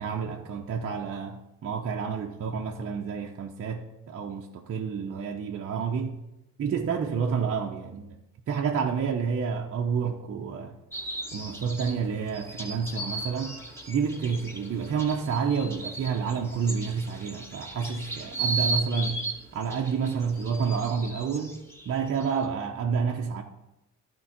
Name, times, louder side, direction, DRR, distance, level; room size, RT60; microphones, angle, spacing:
voice 1, 0.0-6.1 6.6-8.2 8.5-10.8 11.3-13.6 13.9-19.2 19.5-23.4, right 6 dB, 45° right, 0.8 m, -29 dB
sound 1, 10.9-22.4, right 3 dB, 10° left, 2.3 m, -36 dB
11.0 x 4.6 x 5.8 m
supercardioid pair, 75°, 33 cm